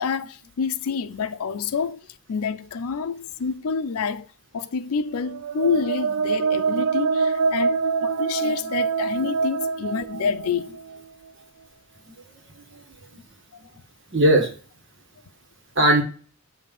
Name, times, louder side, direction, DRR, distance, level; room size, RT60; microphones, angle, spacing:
voice 1, 0.0-2.0 2.3-4.3 4.5-10.8, left 5 dB, 80° left, 0.5 m, -27 dB
sound 1, 5.2-11.0, right 5 dB, 75° right, 0.4 m, -25 dB
voice 2, 9.9-10.3 12.5-13.2 14.1-14.5 15.7-16.0, right 1 dB, 55° right, 1.4 m, -21 dB
7.7 x 2.8 x 5.2 m
head